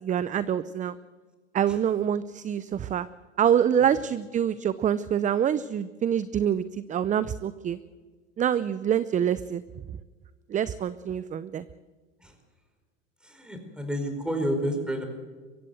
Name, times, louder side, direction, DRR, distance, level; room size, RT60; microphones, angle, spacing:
voice 1, 0.0-0.9 1.5-3.1 3.4-6.6 6.9-7.8 8.4-9.6 10.5-11.6, right 9 dB, 20° right, 16 dB, 0.6 m, -25 dB
voice 2, 3.8-4.2 12.2-12.3 13.2-15.0, equal, 5° right, 5 dB, 4.7 m, -31 dB
23.0 x 15.5 x 7.9 m, 1.4 s
hypercardioid pair, 105°, 35 cm